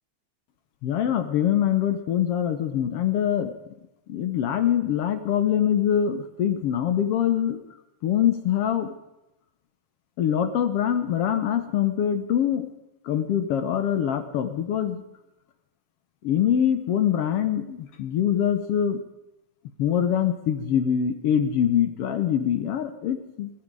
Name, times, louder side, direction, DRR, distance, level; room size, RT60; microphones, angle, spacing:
voice 1, 0.8-3.5 4.1-7.6 8.0-8.9 10.2-12.7 13.0-15.0 16.2-19.0 19.8-23.5, left 9 dB, 65° left, 9 dB, 1.6 m, -24 dB
15.5 x 14.5 x 4.8 m, 0.93 s
omnidirectional pair, 3.5 m